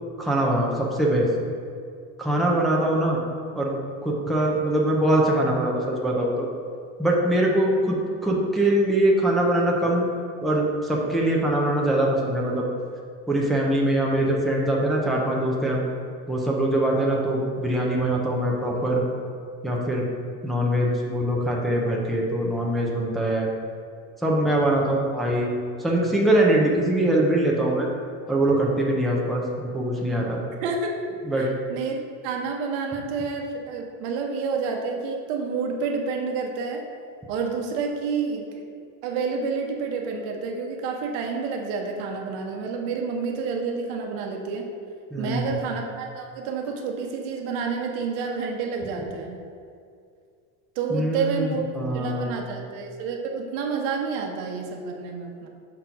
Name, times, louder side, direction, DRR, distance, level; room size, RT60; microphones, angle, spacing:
voice 1, 0.2-1.3 2.2-3.2 3.6-3.7 4.0-6.5 7.0-8.0 8.2-10.1 10.4-12.7 13.3-15.8 16.3-19.0 19.6-20.0 20.4-23.5 24.2-25.5 25.8-27.9 28.3-30.4 31.2-31.5 45.1-45.6 50.9-51.5 51.7-52.4, right 1 dB, ahead, -3 dB, 0.3 m, -23 dB
voice 2, 30.6-31.0 31.3-32.0 32.2-36.8 37.3-38.6 39.0-44.7 45.2-49.4 50.8-51.6 51.9-55.5, right 5 dB, 65° right, 2 dB, 0.9 m, -29 dB
5.8 x 3.8 x 5.7 m, 2.3 s
cardioid pair, 180°, 35 cm